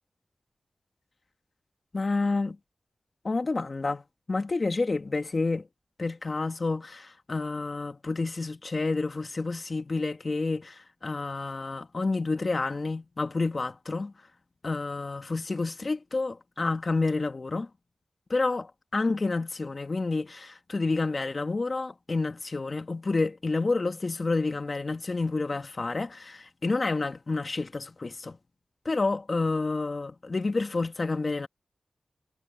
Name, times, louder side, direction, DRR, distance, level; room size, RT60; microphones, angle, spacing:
voice 1, 1.9-2.6 3.2-5.7 6.0-14.1 14.6-17.7 18.3-18.7 18.9-28.4 28.8-31.5, left 3 dB, 55° left, 2.3 m, -29 dB
cardioid pair, 40°, 0 cm